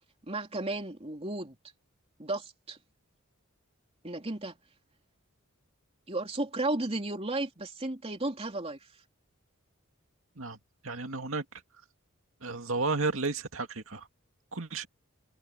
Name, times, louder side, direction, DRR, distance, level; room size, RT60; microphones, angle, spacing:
voice 1, 0.3-1.6 2.2-2.8 4.0-4.6 6.1-8.8, right 2 dB, 30° right, 3.1 m, -33 dB
voice 2, 10.8-11.4 12.4-14.1 14.5-14.9, right 3 dB, 70° right, 2.5 m, -32 dB
head